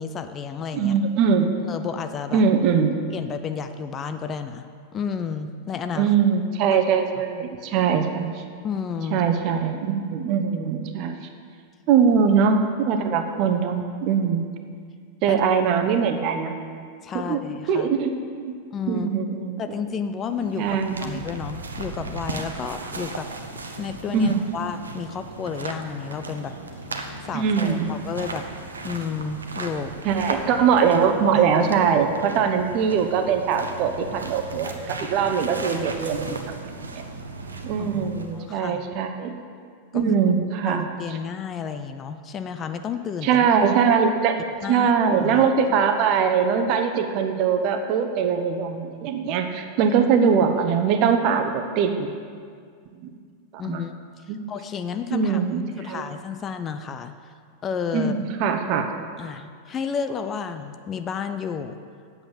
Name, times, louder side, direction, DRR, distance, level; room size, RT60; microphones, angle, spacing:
voice 1, 0.0-0.9 1.7-2.4 3.1-6.1 6.7-6.8 8.6-9.2 15.3-15.4 17.0-17.9 18.7-19.1 19.6-20.6 21.0-23.3 23.8-26.6 27.2-28.5 28.8-30.0 31.3-31.4 37.8-38.9 39.9-40.0 40.7-43.5 44.6-44.9 45.2-45.5 53.6-53.9 54.5-55.5 55.8-57.1 57.6-58.3 59.2-61.8, left 6 dB, 25° left, 9 dB, 0.5 m, -31 dB
voice 2, 0.7-1.6 2.3-3.0 6.0-8.4 9.1-11.3 11.9-14.5 15.2-16.5 17.1-17.4 17.7-18.1 18.5-18.6 18.9-19.6 20.6-21.1 24.1-24.4 27.3-27.9 30.0-36.4 36.9-37.0 37.6-39.4 39.9-40.9 43.2-44.3 44.7-52.1 53.0-53.1 53.5-53.9 54.3-54.4 55.1-56.1 57.9-58.9, right 6 dB, 40° right, 6 dB, 0.9 m, -22 dB
sound 1, 20.2-38.5, right 3 dB, 75° right, 0.8 m, -36 dB
8.4 x 7.9 x 7.2 m, 2.1 s
figure-of-eight pair, 90°, 0 cm